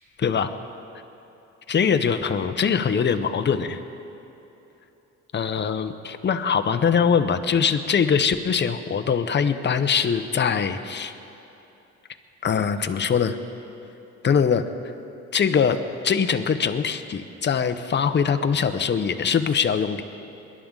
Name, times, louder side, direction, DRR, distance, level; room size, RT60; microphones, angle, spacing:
voice 1, 0.2-0.5 1.7-3.8 5.3-11.1 12.4-13.4 14.2-14.6 15.3-15.8 16.0-20.0, left 6 dB, 35° left, 9 dB, 0.8 m, -22 dB
22.0 x 11.5 x 3.9 m, 3.0 s
cardioid pair, 90°, 30 cm